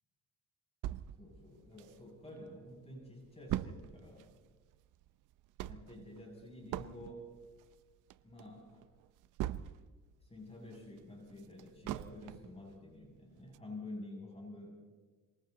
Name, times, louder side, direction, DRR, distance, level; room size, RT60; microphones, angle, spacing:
sound 1, 0.8-2.4 2.8-2.9 3.0-10.0 10.4-12.6 13.0-13.1 13.5-13.6, right 13 dB, 90° right, 0.8 m, -42 dB
voice 1, 1.2-4.3 5.6-7.3 8.2-8.9 10.2-14.7, left 1 dB, 20° left, -1 dB, 7.2 m, -49 dB
27.0 x 24.0 x 4.1 m, 1.3 s
cardioid pair, 90°, 30 cm